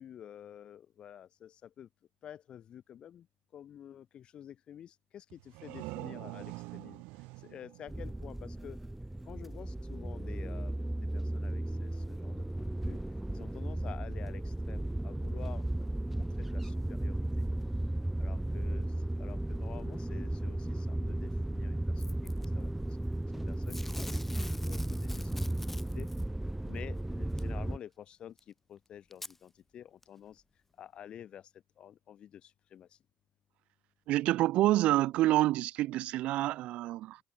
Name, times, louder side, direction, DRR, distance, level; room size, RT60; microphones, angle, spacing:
voice 1, 0.0-1.9 2.2-3.3 3.5-7.0 7.4-8.8 9.2-13.0 13.3-17.4 18.2-23.0 23.3-24.3 24.6-26.1 26.6-30.4 30.8-33.0, left 10 dB, 50° left, 3.8 m, -50 dB
sound 1, 5.3-8.9, right 24 dB, 80° right, 0.9 m, -45 dB
sound 2, 7.9-27.8, right 1 dB, 5° right, 0.7 m, -35 dB
Packing tape duct tape / Tearing, 22.0-22.5 23.7-26.2 27.4-27.5 28.4-28.5 29.1-29.4 30.0-30.1, left 2 dB, 10° left, 2.0 m, -45 dB
voice 2, 34.1-37.2, right 15 dB, 65° right, 0.4 m, -27 dB
cardioid pair, 105°, 2 cm